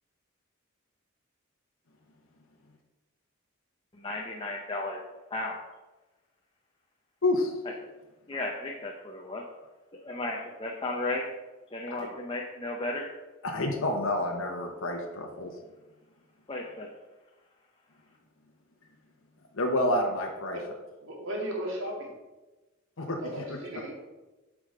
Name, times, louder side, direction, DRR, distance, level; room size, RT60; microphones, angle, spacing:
voice 1, 4.0-5.0 5.3-5.6 8.3-9.4 10.0-11.2 11.7-13.1 16.5-16.9, left 2 dB, 25° left, -1 dB, 0.8 m, -34 dB
voice 2, 7.2-7.5 11.9-12.0 13.4-15.5 19.5-20.6 23.0-23.4, left 1 dB, 70° left, 1 dB, 1.0 m, -28 dB
voice 3, 21.0-22.1 23.2-23.9, equal, 70° right, -1 dB, 2.1 m, -35 dB
7.9 x 5.0 x 5.0 m, 1.1 s
head